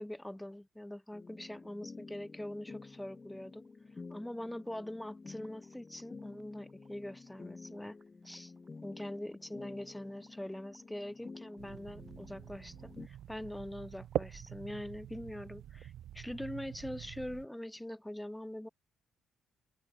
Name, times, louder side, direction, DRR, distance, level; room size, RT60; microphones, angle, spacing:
voice 1, 0.0-3.6 4.1-8.0 8.2-8.5 8.8-18.7, left 1 dB, 5° left, 1.2 m, -43 dB
sound 1, 1.1-13.1, left 4 dB, 30° left, 0.6 m, -51 dB
sound 2, 3.1-14.7, right 5 dB, 35° right, 6.5 m, -71 dB
sound 3, 11.6-17.5, right 11 dB, 75° right, 0.4 m, -44 dB
open air
cardioid pair, 90°, 0 cm